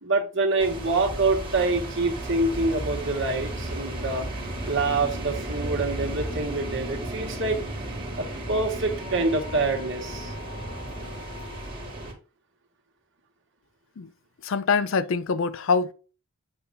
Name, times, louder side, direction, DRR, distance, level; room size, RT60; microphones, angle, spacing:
voice 1, 0.0-4.2 4.6-7.6 8.2-10.3, right 3 dB, 55° right, 1.7 m, -26 dB
sound 1, 0.6-12.1, right 1 dB, 25° right, 1.9 m, -34 dB
voice 2, 14.4-15.9, left 5 dB, 60° left, 0.4 m, -24 dB
7.9 x 2.7 x 5.0 m
head